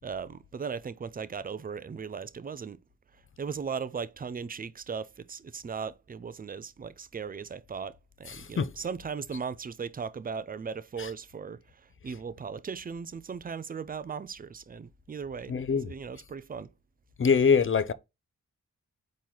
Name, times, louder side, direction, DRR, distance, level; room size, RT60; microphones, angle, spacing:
voice 1, 0.0-2.8 3.1-15.5 15.9-16.7, right 6 dB, 25° right, 0.4 m, -38 dB
voice 2, 8.3-8.7 11.0-11.1 15.5-15.9 17.2-17.9, left 6 dB, 35° left, 0.5 m, -24 dB
4.2 x 3.1 x 3.6 m
cardioid pair, 40°, 36 cm